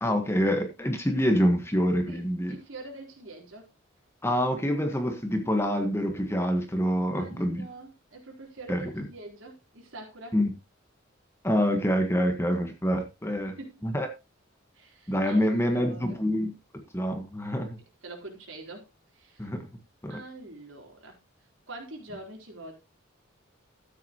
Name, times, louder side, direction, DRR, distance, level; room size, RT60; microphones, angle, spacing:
voice 1, 0.0-2.5 4.2-7.6 8.7-9.1 10.3-10.5 11.4-13.5 13.8-14.1 15.1-16.5 16.9-17.8 19.4-19.7 20.0-20.2, equal, 15° left, 5 dB, 1.5 m, -26 dB
voice 2, 2.5-3.7 7.1-10.4 13.4-13.8 14.7-16.2 18.0-18.9 19.1-19.5 20.1-21.2 21.7-22.7, right 2 dB, 75° right, 1 dB, 3.9 m, -44 dB
13.0 x 9.5 x 3.0 m, 0.25 s
head